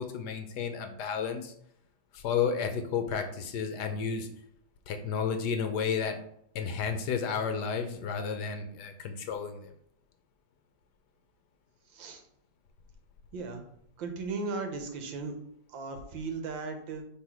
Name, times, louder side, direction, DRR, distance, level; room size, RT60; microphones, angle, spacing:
voice 1, 0.0-1.5 2.1-4.3 4.9-6.2 6.5-9.7, left 6 dB, 70° left, 7 dB, 1.2 m, -32 dB
voice 2, 13.3-13.6 14.0-15.3 15.7-17.0, right 4 dB, 85° right, 5 dB, 1.7 m, -36 dB
5.8 x 3.7 x 4.7 m, 0.69 s
omnidirectional pair, 2.0 m